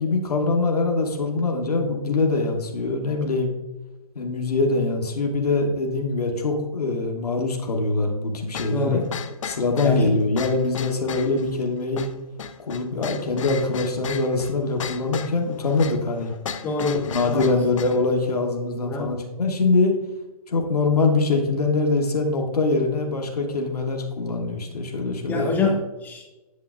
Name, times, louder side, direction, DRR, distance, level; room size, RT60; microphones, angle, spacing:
voice 1, 0.0-3.5 4.1-9.0 9.4-12.1 12.7-16.3 17.1-19.9 20.5-25.5, left 3 dB, 75° left, 2 dB, 1.1 m, -23 dB
sound 1, 8.5-18.0, left 7 dB, 55° left, 0.6 m, -36 dB
voice 2, 8.7-9.1 9.8-10.2 16.6-17.1 17.3-17.6 18.8-19.1 25.3-26.2, left 4 dB, 10° left, 0 dB, 0.3 m, -26 dB
8.5 x 6.8 x 2.4 m, 1.1 s
figure-of-eight pair, 130°, 20 cm